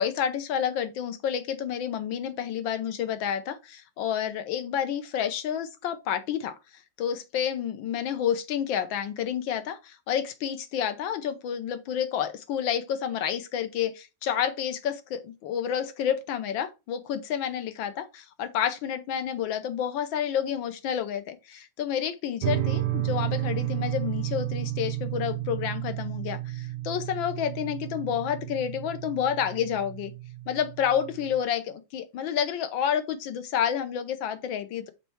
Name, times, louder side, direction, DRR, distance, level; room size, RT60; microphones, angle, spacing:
voice 1, 0.0-6.6 7.0-30.1 30.5-34.9, left 9 dB, 85° left, 1.6 m, -29 dB
sound 1, 22.4-31.4, right 15 dB, 80° right, 1.3 m, -32 dB
5.9 x 4.4 x 4.4 m
omnidirectional pair, 2.1 m